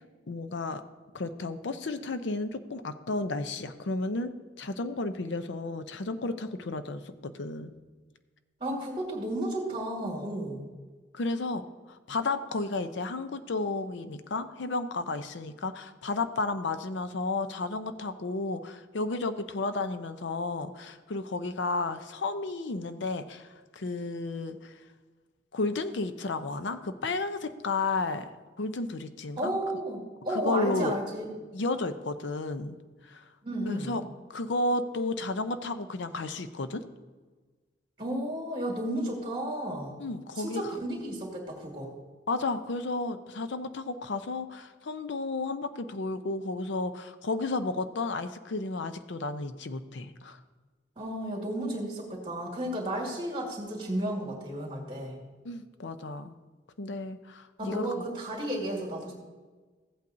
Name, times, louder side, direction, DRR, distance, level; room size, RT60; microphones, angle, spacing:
voice 1, 0.3-0.8 1.1-4.3 4.6-7.7 11.1-24.7 25.5-28.3 28.6-29.5 30.3-31.0 31.5-32.8 33.0-33.2 33.7-34.0 34.3-36.8 40.0-40.8 42.3-50.4 55.4-56.3 56.8-58.0, left 3 dB, 75° left, 10 dB, 0.6 m, -32 dB
voice 2, 8.6-10.6 29.4-31.2 33.4-33.9 38.0-39.9 40.4-41.9 51.0-55.2 57.6-59.1, right 1 dB, 25° right, 0 dB, 2.2 m, -33 dB
15.0 x 8.4 x 2.6 m, 1.3 s
head